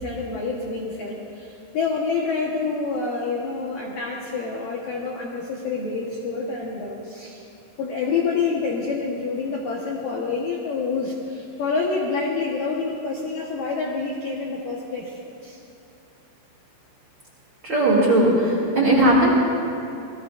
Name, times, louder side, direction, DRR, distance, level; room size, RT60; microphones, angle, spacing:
voice 1, 0.0-7.5 7.8-15.6, left 4 dB, 70° left, -2 dB, 2.1 m, -27 dB
voice 2, 17.6-19.3, right 1 dB, 30° right, -6 dB, 2.5 m, -18 dB
27.5 x 19.5 x 2.6 m, 2.8 s
omnidirectional pair, 5.9 m